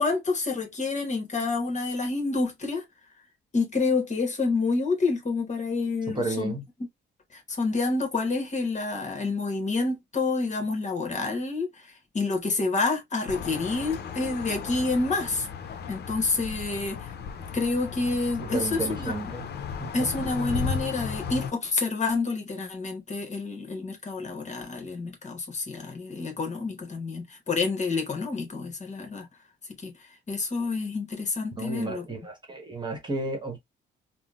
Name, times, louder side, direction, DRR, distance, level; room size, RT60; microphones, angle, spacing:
voice 1, 0.0-2.8 3.5-6.5 7.3-15.5 15.9-17.1 17.5-19.1 19.9-29.3 29.8-29.9 30.3-32.0, left 3 dB, 35° left, 1.0 m, -28 dB
voice 2, 6.1-6.6 18.4-19.5 19.8-20.1 31.6-33.6, right 2 dB, 25° right, 1.1 m, -32 dB
sound 1, 13.3-21.5, left 6 dB, 55° left, 0.5 m, -35 dB
3.7 x 2.0 x 2.3 m
cardioid pair, 90°, 20 cm